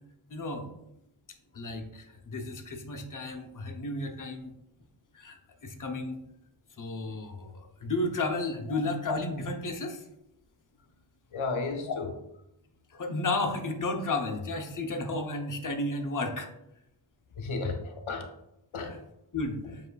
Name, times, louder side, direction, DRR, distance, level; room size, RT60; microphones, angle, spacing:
voice 1, 0.3-0.7 1.5-4.5 5.1-5.4 5.6-6.2 6.8-10.0 12.9-16.5 19.3-19.8, left 2 dB, 40° left, 4 dB, 0.7 m, -33 dB
voice 2, 11.3-12.1 17.4-18.3 18.7-18.9 19.6-19.7, left 4 dB, 90° left, 5 dB, 0.6 m, -33 dB
7.4 x 2.5 x 2.3 m, 0.82 s
cardioid pair, 45°, 47 cm